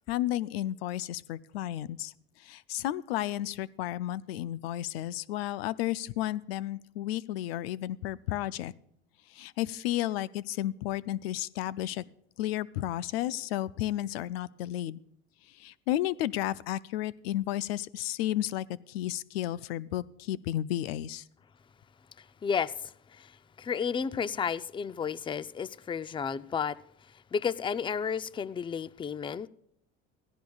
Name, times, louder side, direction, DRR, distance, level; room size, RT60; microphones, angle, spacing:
voice 1, 0.1-2.1 2.4-8.7 9.3-12.0 12.4-15.0 15.6-21.2, left 13 dB, 90° left, 0.5 m, -32 dB
voice 2, 22.2-23.3 23.6-26.8 27.3-29.5, left 6 dB, 15° left, 0.4 m, -32 dB
16.5 x 15.5 x 2.4 m
supercardioid pair, 85°, 30 cm